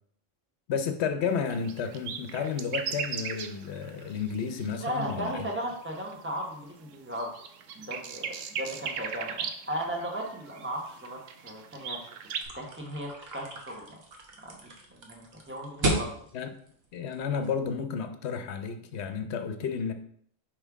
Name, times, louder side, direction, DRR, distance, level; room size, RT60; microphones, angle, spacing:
voice 1, 0.7-5.5 16.3-16.5 16.9-19.9, left 6 dB, 65° left, 8 dB, 0.9 m, -32 dB
sound 1, 1.3-6.3 6.8-12.5, right 7 dB, 75° right, 1.0 m, -38 dB
voice 2, 4.8-7.3 7.8-12.0 12.6-13.9 14.4-16.2, equal, 10° right, -1 dB, 1.1 m, -36 dB
sound 2, 12.4-17.7, right 1 dB, 50° right, 1.2 m, -35 dB
5.5 x 5.2 x 3.6 m, 0.64 s
omnidirectional pair, 1.3 m